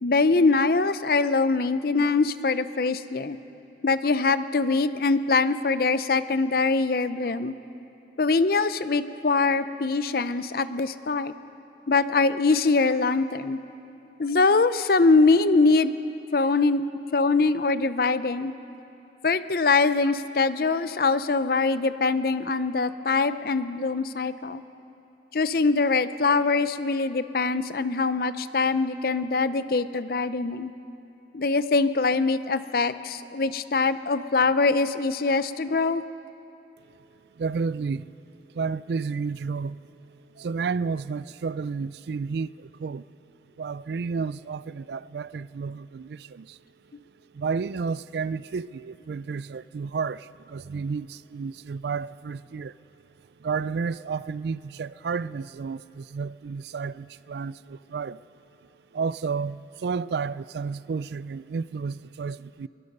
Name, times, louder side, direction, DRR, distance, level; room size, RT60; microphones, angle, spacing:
voice 1, 0.0-3.4 3.8-7.5 8.2-11.3 11.9-13.6 14.2-15.9 16.3-16.8 17.1-18.5 19.2-24.6 25.3-30.7 31.3-36.0, left 3 dB, 55° left, 0.6 m, -23 dB
voice 2, 37.4-38.1 38.5-39.9 40.3-43.0 43.6-46.6 47.3-52.8 53.4-58.2 58.9-62.7, right 5 dB, 65° right, 0.4 m, -31 dB
22.5 x 21.5 x 5.4 m
head